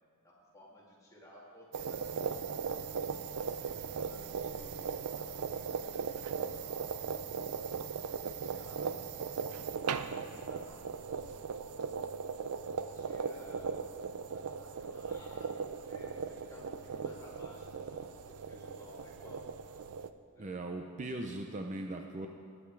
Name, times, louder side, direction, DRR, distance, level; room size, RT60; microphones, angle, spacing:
voice 1, 0.2-2.6 3.3-9.1 9.7-11.1 12.0-12.3 12.9-13.8 14.3-19.5 20.3-20.5, left 1 dB, 15° left, -5 dB, 2.2 m, -56 dB
sound 1, 1.7-20.1, right 6 dB, 85° right, 0.5 m, -38 dB
voice 2, 20.4-22.3, right 2 dB, 35° right, 4 dB, 0.6 m, -39 dB
15.5 x 9.6 x 4.7 m, 2.3 s
head